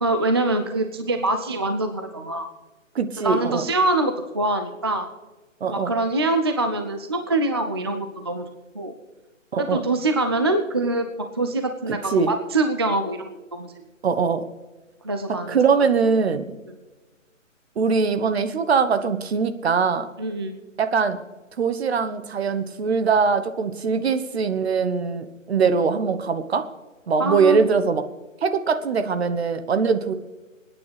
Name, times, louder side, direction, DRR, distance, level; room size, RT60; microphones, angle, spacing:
voice 1, 0.0-2.5 3.2-5.1 5.7-8.4 8.7-8.9 9.6-11.1 11.4-13.7 15.0-15.6 20.2-20.6 27.2-27.6, right 2 dB, 20° right, 6 dB, 0.4 m, -24 dB
voice 2, 2.9-3.7 5.6-5.9 9.5-9.9 12.1-12.3 14.0-14.4 15.3-16.6 17.8-20.1 20.8-21.2 21.6-26.7 27.1-28.0 28.4-30.1, right 5 dB, 55° right, 10 dB, 1.2 m, -22 dB
26.5 x 9.6 x 3.4 m, 1.2 s
figure-of-eight pair, 140°, 39 cm